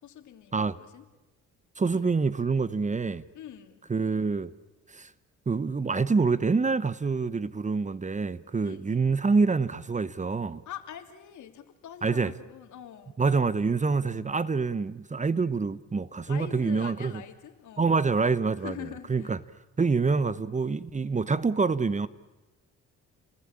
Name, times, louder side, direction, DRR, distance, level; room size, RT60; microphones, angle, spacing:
voice 1, 0.0-1.1 1.9-2.1 3.3-3.8 8.6-9.1 10.7-13.1 16.3-17.9 18.6-19.3 21.6-21.7, left 10 dB, 75° left, 2.8 m, -44 dB
voice 2, 1.8-3.2 3.9-4.5 4.9-5.1 5.5-10.6 12.0-12.3 13.2-17.1 17.8-18.7 19.1-19.4 19.8-22.1, right 4 dB, 25° right, 1.0 m, -26 dB
29.5 x 20.0 x 8.8 m
cardioid pair, 90°, 30 cm